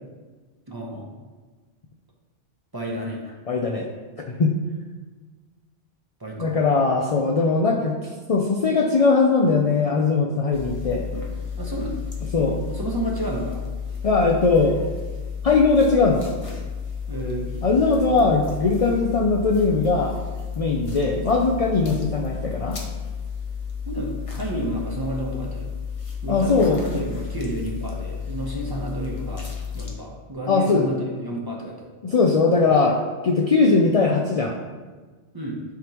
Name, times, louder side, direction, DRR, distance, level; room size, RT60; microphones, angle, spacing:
voice 1, 0.7-1.2 2.7-3.4 6.2-6.6 11.6-12.1 12.3-13.6 17.1-17.5 18.1-18.3 20.9-21.1 23.9-25.8 26.2-29.5 29.7-31.9 35.3-35.6, right 1 dB, 20° right, -2 dB, 0.9 m, -31 dB
voice 2, 3.5-3.9 4.4-4.5 6.4-7.9 8.3-11.1 12.3-12.6 14.0-14.8 15.4-16.3 17.6-20.2 20.6-22.8 26.3-27.0 30.5-30.9 32.0-34.6, left 4 dB, 50° left, 1 dB, 0.4 m, -20 dB
sound 1, 10.5-29.9, left 6 dB, 30° left, 0.9 m, -32 dB
10.5 x 3.7 x 3.0 m, 1.4 s
omnidirectional pair, 1.2 m